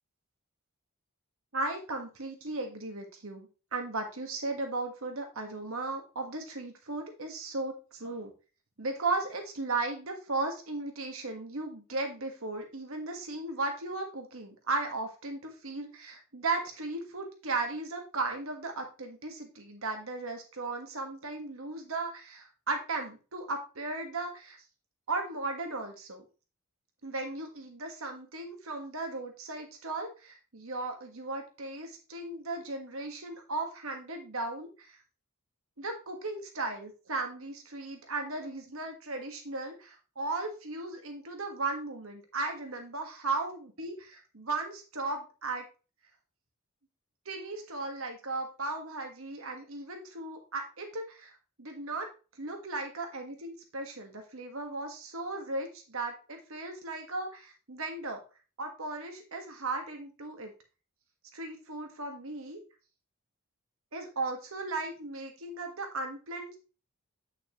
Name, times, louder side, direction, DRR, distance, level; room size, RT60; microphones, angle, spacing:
voice 1, 1.5-8.3 8.8-24.6 25.1-26.2 27.0-35.0 35.8-45.6 47.2-51.3 51.6-52.1 52.4-58.2 58.6-60.5 61.3-62.6 63.9-66.6, right 3 dB, 65° right, 4 dB, 1.6 m, -36 dB
9.1 x 5.8 x 3.1 m, 0.33 s
head